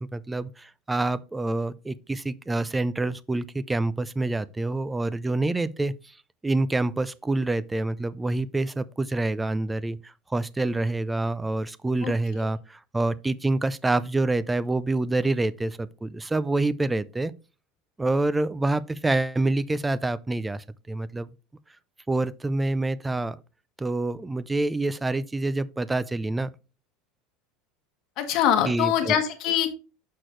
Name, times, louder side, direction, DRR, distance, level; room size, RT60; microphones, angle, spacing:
voice 1, 0.0-5.9 6.4-17.3 18.0-21.3 22.1-23.4 23.8-26.5 28.7-29.1, right 2 dB, 10° right, 0.3 m, -27 dB
voice 2, 28.2-29.7, left 9 dB, 45° left, 1.5 m, -23 dB
6.4 x 6.0 x 3.1 m
supercardioid pair, 150°, 0 cm